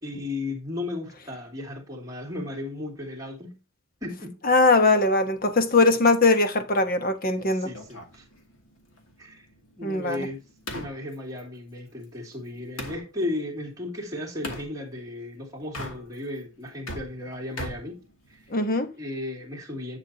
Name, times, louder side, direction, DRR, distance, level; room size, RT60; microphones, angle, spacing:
voice 1, 0.0-3.6 4.0-4.4 7.5-8.3 9.2-9.5 9.8-10.4 10.7-18.0 18.3-18.6 19.0-20.0, left 2 dB, 15° right, 2.6 m, -35 dB
voice 2, 4.4-7.7 9.8-10.3 18.5-18.9, left 3 dB, 40° left, 1.1 m, -21 dB
sound 1, 7.7-13.0 14.4-14.7 15.6-16.4 16.7-18.6, left 1 dB, 70° left, 2.5 m, -40 dB
10.5 x 7.2 x 2.8 m
head